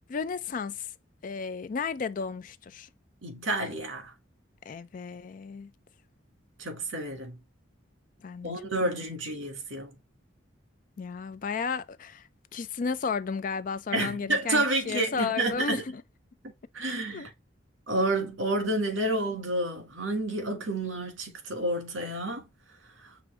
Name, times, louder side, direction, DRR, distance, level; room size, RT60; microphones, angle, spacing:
voice 1, 0.1-0.9 1.2-2.9 4.7-5.7 8.2-8.5 8.8-8.9 11.0-16.0 17.1-17.3, left 5 dB, 45° left, 0.4 m, -33 dB
voice 2, 3.2-4.1 6.6-7.4 8.4-9.9 13.9-15.8 16.7-17.3 17.9-22.4, right 2 dB, 80° right, 1.8 m, -29 dB
6.1 x 2.6 x 3.2 m
head